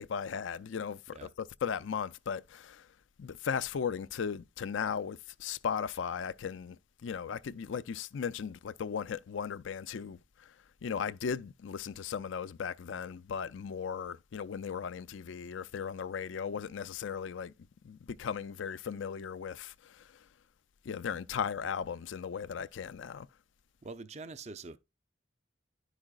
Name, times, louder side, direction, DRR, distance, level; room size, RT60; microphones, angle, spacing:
voice 1, 0.0-2.9 3.2-10.5 10.8-17.5 17.8-20.1 20.8-23.3, left 7 dB, 85° left, 0.4 m, -37 dB
voice 2, 23.8-24.8, right 3 dB, 35° right, 0.5 m, -44 dB
11.5 x 4.9 x 2.4 m
head